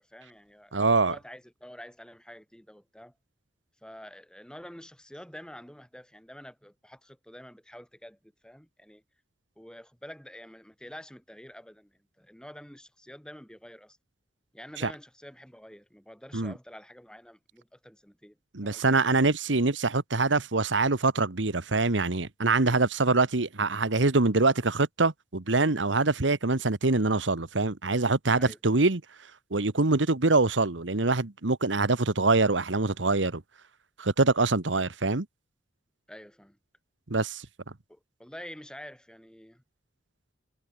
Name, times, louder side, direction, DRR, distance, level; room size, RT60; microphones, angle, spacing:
voice 1, 0.0-3.1 3.8-9.0 9.6-14.0 14.5-18.4 18.6-19.0 28.4-28.6 36.1-36.6 37.9-39.6, equal, 5° left, 7.1 m, -48 dB
voice 2, 0.7-1.1 14.8-14.9 16.3-16.5 18.5-29.0 29.5-33.4 34.0-35.2 37.1-37.4, right 3 dB, 90° right, 1.5 m, -24 dB
head